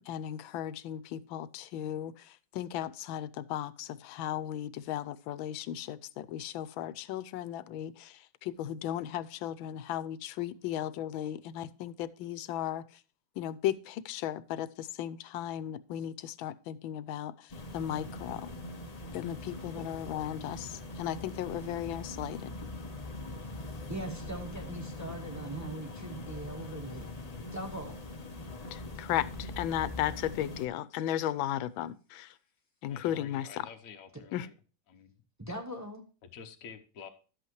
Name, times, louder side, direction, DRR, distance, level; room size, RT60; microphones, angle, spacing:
voice 1, 0.0-13.0 13.4-18.5 19.1-22.5 28.7-32.4 32.8-33.7 34.3-34.5, left 11 dB, 85° left, 1.4 m, -36 dB
sound 1, 17.5-30.6, left 1 dB, 30° left, 0.8 m, -42 dB
voice 2, 23.9-27.1 27.5-28.0 35.4-36.1, right 1 dB, 20° right, 0.5 m, -40 dB
voice 3, 32.9-34.5 34.9-35.2 36.2-37.1, left 6 dB, 50° left, 1.3 m, -49 dB
12.0 x 8.0 x 3.1 m
omnidirectional pair, 2.1 m